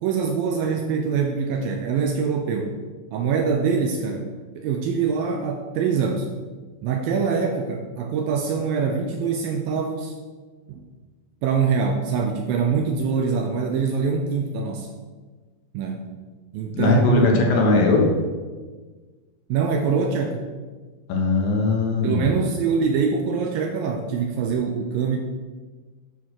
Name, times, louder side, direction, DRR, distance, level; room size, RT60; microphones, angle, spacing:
voice 1, 0.0-2.7 3.1-4.3 4.6-6.3 6.8-10.2 10.7-10.8 11.4-14.9 15.7-16.1 16.5-17.5 19.5-20.4 22.0-25.2, right 5 dB, 75° right, 3 dB, 2.2 m, -24 dB
voice 2, 16.7-18.1 21.1-22.4, left 3 dB, 65° left, 0 dB, 2.8 m, -19 dB
9.3 x 5.9 x 6.4 m, 1.4 s
omnidirectional pair, 4.7 m